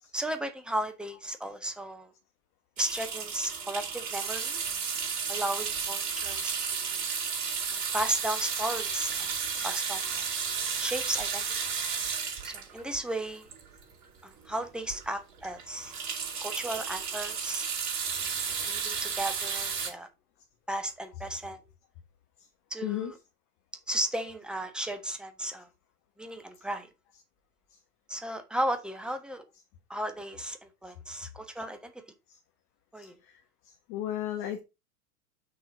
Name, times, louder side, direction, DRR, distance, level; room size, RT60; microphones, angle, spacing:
voice 1, 0.1-2.1 2.8-4.6 5.3-7.0 7.7-10.3 10.8-11.4 12.4-13.5 14.2-15.9 16.4-17.7 18.4-20.1 20.7-21.6 22.7-23.1 23.9-25.7 26.2-26.9 28.1-29.4 29.9-31.9 32.9-33.1, right 1 dB, ahead, 1.2 m, -35 dB
sound 1, 2.8-14.1 14.6-14.7 14.9-15.1 15.4-19.9, right 6 dB, 35° right, 4.1 m, -33 dB
voice 2, 22.8-23.1 26.6-26.7 27.7-27.8 32.3-32.4 33.0-33.4 33.6-34.6, left 12 dB, 40° left, 1.4 m, -36 dB
6.6 x 4.2 x 5.6 m
figure-of-eight pair, 100°, 46 cm